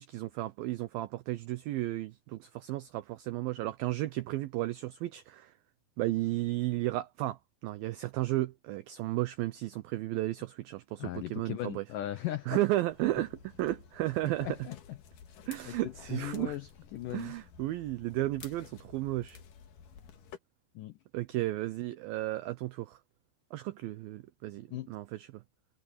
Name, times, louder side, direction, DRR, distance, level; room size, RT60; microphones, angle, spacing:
voice 1, 0.0-5.5 6.0-11.9 12.5-14.6 15.5-16.6 17.1-19.4 21.1-23.0 23.5-25.4, right 16 dB, 90° right, 2.0 m, -34 dB
voice 2, 11.0-12.6 14.4-15.0 15.7-17.3 20.8-21.0 24.7-24.9, left 14 dB, 85° left, 1.8 m, -38 dB
sound 1, 12.9-20.4, left 7 dB, 60° left, 2.8 m, -53 dB
omnidirectional pair, 5.1 m